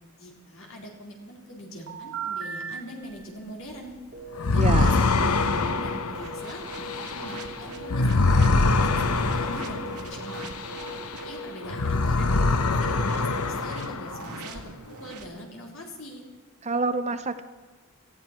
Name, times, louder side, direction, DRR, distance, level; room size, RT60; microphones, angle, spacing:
voice 1, 0.2-4.0 4.4-5.3 5.6-10.5 11.0-12.5 12.8-16.3, equal, 65° left, -1 dB, 4.0 m, -42 dB
sound 1, 1.9-2.8 4.1-7.9 8.1-8.9 9.1-9.4 9.6-9.9 10.1-13.4, right 5 dB, 60° right, 3.3 m, -39 dB
sound 2, 4.4-11.3 11.6-14.3, left 3 dB, 90° left, 0.9 m, -24 dB
voice 2, 4.5-5.0 16.6-17.4, right 3 dB, 30° right, 10 dB, 0.8 m, -27 dB
sound 3, 6.1-11.4 12.8-15.3, right 3 dB, 90° right, 2.0 m, -43 dB
18.5 x 14.5 x 4.5 m, 1.4 s
head